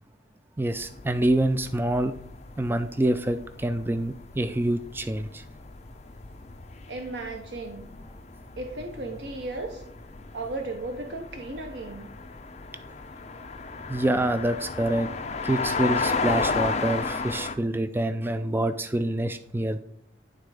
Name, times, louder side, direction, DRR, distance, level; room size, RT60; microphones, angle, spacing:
voice 1, 0.6-2.1 2.6-5.4 13.9-15.1 15.4-19.8, right 1 dB, 10° right, 10 dB, 0.3 m, -26 dB
sound 1, 0.7-17.5, left 4 dB, 40° left, 0.6 m, -34 dB
voice 2, 6.9-7.9 8.6-9.8 10.3-12.1, right 2 dB, 80° right, 4 dB, 0.9 m, -35 dB
11.0 x 3.8 x 4.8 m, 0.71 s
head